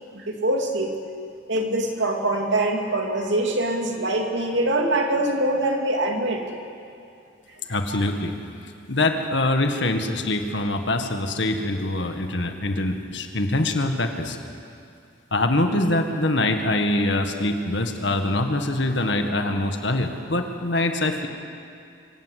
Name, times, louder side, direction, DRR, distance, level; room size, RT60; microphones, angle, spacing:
voice 1, 0.1-0.9 1.5-6.4 7.9-8.0, right 1 dB, 70° right, 2 dB, 2.8 m, -24 dB
voice 2, 7.7-8.3 8.9-14.4 15.3-21.3, left 2 dB, 65° left, 5 dB, 1.8 m, -24 dB
25.0 x 17.0 x 8.3 m, 2.4 s
head